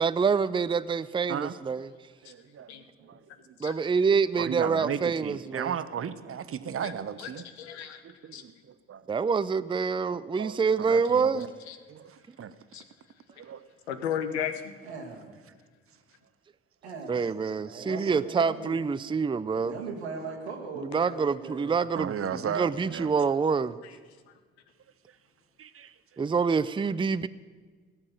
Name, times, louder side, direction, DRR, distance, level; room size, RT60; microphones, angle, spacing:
voice 1, 0.0-1.9 3.6-5.7 9.1-11.5 17.1-19.7 20.9-23.8 26.2-27.3, right 5 dB, 15° right, 15 dB, 0.5 m, -26 dB
voice 2, 2.2-3.2 4.4-7.4 8.0-9.0 10.4-11.5 11.9-12.5 13.4-13.6 19.7-19.8 21.9-23.1 25.6-25.9, right 8 dB, 45° right, 13 dB, 1.0 m, -35 dB
voice 3, 3.0-3.5 14.8-15.4 16.8-18.9 19.6-21.8, right 4 dB, 85° right, 1 dB, 1.8 m, -40 dB
voice 4, 7.6-8.0 8.3-8.4 11.1-11.2 11.7-11.8 12.7-12.8 13.9-14.5, left 9 dB, 80° left, 9 dB, 1.0 m, -33 dB
18.0 x 7.3 x 9.3 m, 1.5 s
figure-of-eight pair, 40°, 32 cm